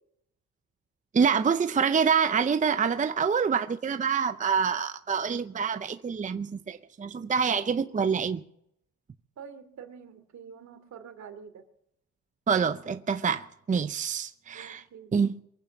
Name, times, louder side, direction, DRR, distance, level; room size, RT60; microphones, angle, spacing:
voice 1, 1.1-8.4 12.5-14.8 15.1-15.4, right 6 dB, 25° right, 0.6 m, -26 dB
voice 2, 9.4-11.6 14.5-15.1, right 7 dB, 65° right, 2.7 m, -46 dB
23.0 x 8.8 x 7.1 m
cardioid pair, 90°, 30 cm